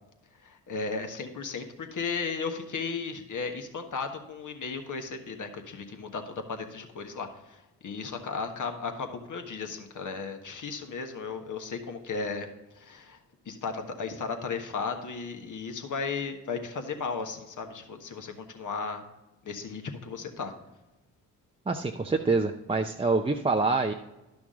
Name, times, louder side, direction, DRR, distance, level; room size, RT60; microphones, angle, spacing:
voice 1, 0.4-12.5 12.7-13.2 13.4-19.0 19.4-20.5, left 5 dB, 50° left, 6 dB, 1.4 m, -35 dB
voice 2, 21.7-23.9, right 3 dB, 15° right, 2 dB, 0.6 m, -26 dB
11.5 x 6.0 x 3.7 m, 1.0 s
hypercardioid pair, 45°, 40 cm